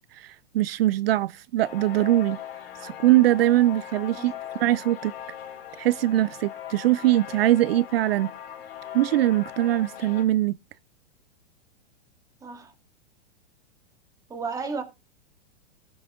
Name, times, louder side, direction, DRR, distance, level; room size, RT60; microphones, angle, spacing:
voice 1, 0.1-2.4 2.8-4.3 4.6-5.1 5.8-8.3 8.9-10.5, right 15 dB, 65° right, 0.5 m, -22 dB
sound 1, 1.6-10.2, left 10 dB, 65° left, 2.6 m, -39 dB
voice 2, 12.4-12.7 14.3-14.8, right 4 dB, 10° right, 1.9 m, -33 dB
14.5 x 6.1 x 3.6 m
hypercardioid pair, 145°, 32 cm